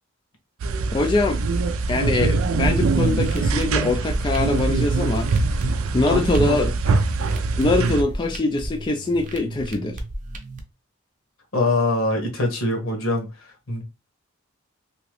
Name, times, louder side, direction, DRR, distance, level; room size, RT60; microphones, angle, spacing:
sound 1, 0.6-8.0, right 3 dB, 80° right, 0.4 m, -23 dB
voice 1, 0.9-1.4 1.9-5.3 5.9-6.7 7.5-10.0, left 2 dB, 20° left, 0.3 m, -23 dB
sound 2, 2.6-10.6, right 1 dB, 35° right, 0.6 m, -33 dB
voice 2, 6.1-7.0 11.5-13.8, left 2 dB, 75° left, 1.4 m, -24 dB
3.0 x 2.8 x 3.1 m
head